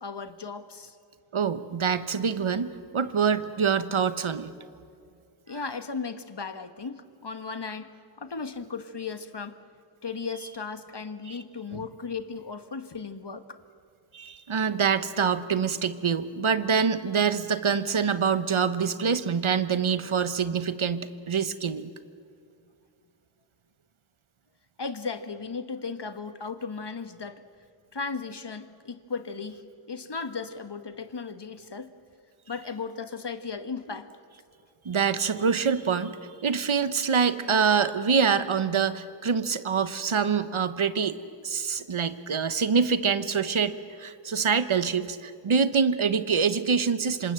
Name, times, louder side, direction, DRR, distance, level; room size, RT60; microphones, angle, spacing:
voice 1, 0.0-1.0 5.5-9.6 10.0-13.6 14.9-15.0 24.8-27.4 27.9-31.9 32.5-34.1, left 4 dB, 55° left, 10 dB, 1.4 m, -36 dB
voice 2, 1.3-4.5 11.3-11.4 11.7-11.8 14.1-21.9 34.8-36.1 36.4-41.2 41.4-47.3, right 6 dB, 75° right, 12 dB, 1.1 m, -25 dB
26.5 x 26.0 x 7.8 m, 2.4 s
wide cardioid pair, 70°, 49 cm